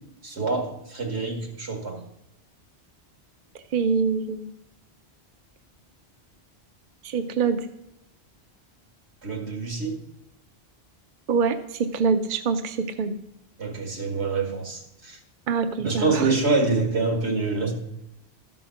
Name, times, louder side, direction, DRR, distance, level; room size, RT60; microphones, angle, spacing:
voice 1, 0.2-2.0 9.2-10.0 13.6-15.2 15.8-17.7, right 3 dB, 80° right, 2 dB, 2.2 m, -26 dB
voice 2, 3.7-4.5 7.0-7.6 11.3-13.1 15.5-16.3, right 5 dB, 55° right, 7 dB, 0.7 m, -24 dB
13.0 x 5.5 x 5.7 m, 0.86 s
omnidirectional pair, 1.1 m